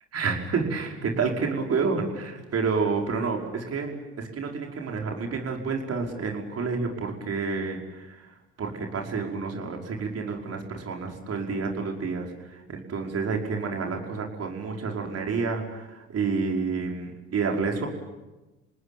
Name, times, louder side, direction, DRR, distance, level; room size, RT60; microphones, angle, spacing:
voice 1, 0.1-8.3 8.6-17.9, right 4 dB, 55° right, 1 dB, 5.4 m, -29 dB
27.5 x 19.0 x 9.3 m, 1.1 s
supercardioid pair, 65°, 30 cm